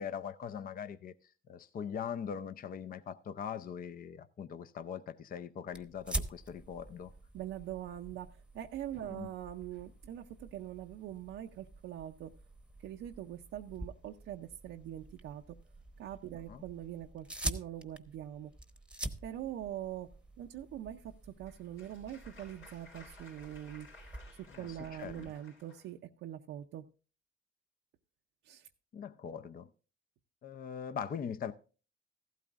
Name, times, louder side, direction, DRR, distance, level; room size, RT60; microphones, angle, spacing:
voice 1, 0.0-7.1 9.1-9.3 16.5-16.6 24.5-25.3 28.9-29.7 30.4-31.5, left 7 dB, 45° left, 0.5 m, -41 dB
sound 1, 5.7-25.3, right 1 dB, 5° right, 0.9 m, -46 dB
voice 2, 7.3-8.3 8.5-12.3 12.8-15.6 16.0-18.5 19.2-20.1 20.4-23.9 24.5-26.8 28.4-28.7, right 11 dB, 85° right, 0.6 m, -43 dB
Applause, 21.1-25.9, left 3 dB, 85° left, 4.1 m, -57 dB
15.0 x 12.5 x 2.4 m
cardioid pair, 90°, 20 cm